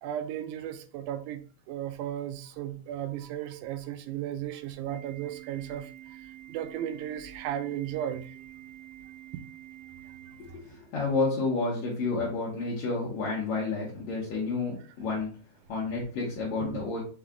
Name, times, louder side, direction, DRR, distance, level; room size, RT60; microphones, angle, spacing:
voice 1, 0.0-8.4 10.3-10.6 16.6-16.8, right 11 dB, 85° right, 2.0 m, -35 dB
Organ, 4.9-10.9, right 12 dB, 25° right, 1.1 m, -48 dB
voice 2, 10.4-15.3 15.7-17.0, left 3 dB, 70° left, 2.3 m, -30 dB
5.6 x 2.4 x 3.6 m
omnidirectional pair, 3.5 m